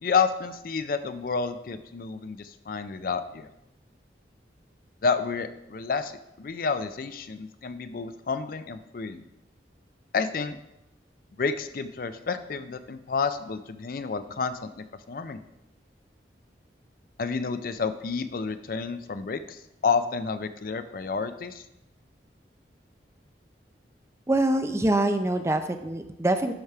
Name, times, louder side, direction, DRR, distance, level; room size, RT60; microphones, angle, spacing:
voice 1, 0.0-3.5 5.0-6.1 6.4-9.2 10.1-10.6 11.4-15.4 17.2-21.6, left 5 dB, 50° left, 11 dB, 0.4 m, -30 dB
voice 2, 24.3-26.5, right 1 dB, 15° right, 8 dB, 0.4 m, -24 dB
12.0 x 4.7 x 3.4 m, 0.87 s
head